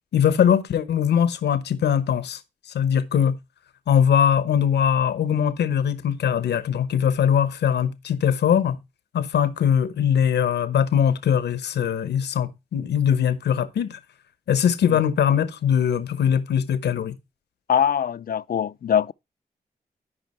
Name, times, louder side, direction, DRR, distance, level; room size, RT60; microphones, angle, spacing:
voice 1, 0.1-2.4 2.7-3.4 3.9-8.8 9.1-14.0 14.5-17.1, left 8 dB, 85° left, 1.0 m, -21 dB
voice 2, 17.7-19.1, left 8 dB, 60° left, 0.5 m, -22 dB
12.5 x 5.1 x 4.4 m
supercardioid pair, 40°, 17 cm